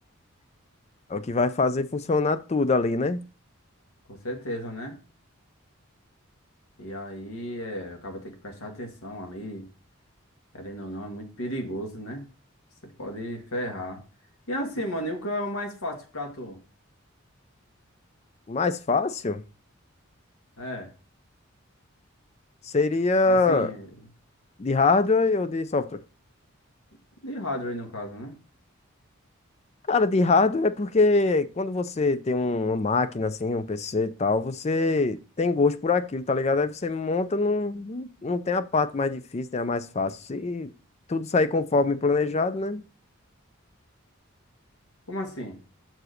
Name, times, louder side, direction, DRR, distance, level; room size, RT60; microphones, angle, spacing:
voice 1, 1.1-3.2 18.5-19.4 22.6-23.7 24.6-26.0 29.9-40.7 41.1-42.8, left 3 dB, 30° left, 0.4 m, -24 dB
voice 2, 4.1-5.0 6.8-9.6 10.5-12.2 12.8-14.0 14.5-16.6 20.6-20.9 23.3-23.9 27.2-28.3 45.1-45.6, equal, 85° left, 1.8 m, -34 dB
6.1 x 4.8 x 6.4 m
head